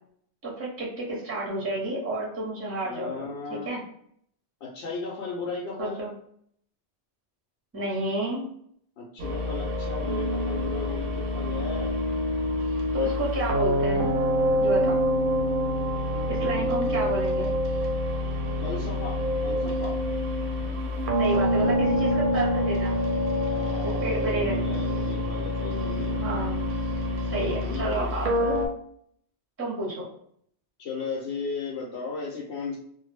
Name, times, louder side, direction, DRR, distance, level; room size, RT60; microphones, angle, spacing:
voice 1, 0.4-3.8 5.8-6.1 7.7-8.4 12.9-14.1 14.6-15.0 16.3-17.5 21.2-23.0 23.8-24.5 26.2-26.6 27.3-28.6 29.6-30.1, right 2 dB, 15° right, -3 dB, 0.5 m, -30 dB
voice 2, 2.8-3.7 4.6-6.0 9.0-12.0 16.0-17.1 18.6-20.0 23.4-26.2 27.5-28.1 30.8-32.8, left 4 dB, 75° left, -5 dB, 0.9 m, -36 dB
sound 1, 9.2-28.7, left 1 dB, 60° right, 0.6 m, -26 dB
2.1 x 2.0 x 3.1 m, 0.66 s
omnidirectional pair, 1.1 m